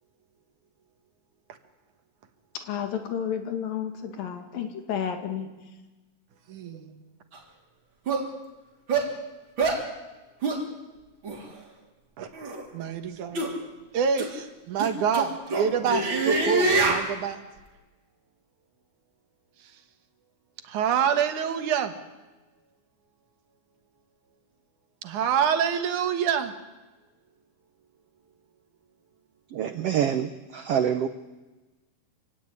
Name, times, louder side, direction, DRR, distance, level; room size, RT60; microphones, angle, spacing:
voice 1, 2.6-5.5, left 8 dB, 80° left, 6 dB, 4.0 m, -31 dB
voice 2, 6.5-6.9 12.2-12.3 12.7-13.5 13.9-17.4 20.6-21.9 25.0-26.5, right 7 dB, 65° right, 8 dB, 2.7 m, -26 dB
sound 1, 7.3-7.4 8.1-8.2 8.9-9.1 9.6-9.8 10.4-10.6 11.2-11.4 12.3-12.6 13.3-13.5 14.2-14.3 14.8-17.1, right 3 dB, 35° right, 3.8 m, -25 dB
voice 3, 29.5-31.1, right 8 dB, 85° right, 10 dB, 1.3 m, -26 dB
26.5 x 17.0 x 9.8 m, 1.2 s
omnidirectional pair, 4.0 m